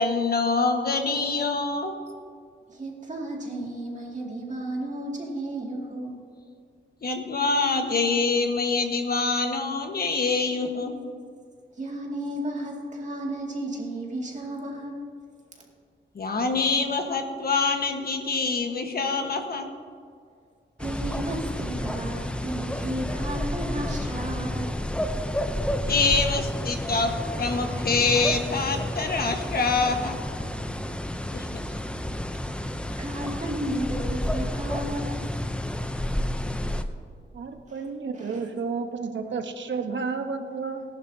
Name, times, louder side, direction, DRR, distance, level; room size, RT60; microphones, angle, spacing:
voice 1, 0.0-1.9 7.0-10.9 16.1-19.7 25.9-30.1 31.3-31.6, left 4 dB, 50° left, 4 dB, 1.4 m, -25 dB
voice 2, 2.7-6.3 11.7-15.1 15.6-15.7 20.8-24.8 25.2-25.3 26.7-27.1 27.7-27.8 28.2-28.3 31.2-31.7 33.0-35.3 35.8-36.0 37.7-37.9 38.2-38.4, right 1 dB, 40° right, -2 dB, 2.3 m, -34 dB
sound 1, 20.8-36.8, left 1 dB, 5° left, 0.6 m, -30 dB
voice 3, 37.3-40.8, right 5 dB, 75° right, 6 dB, 1.1 m, -31 dB
19.0 x 11.5 x 2.8 m, 2.2 s
wide cardioid pair, 135°, 19 cm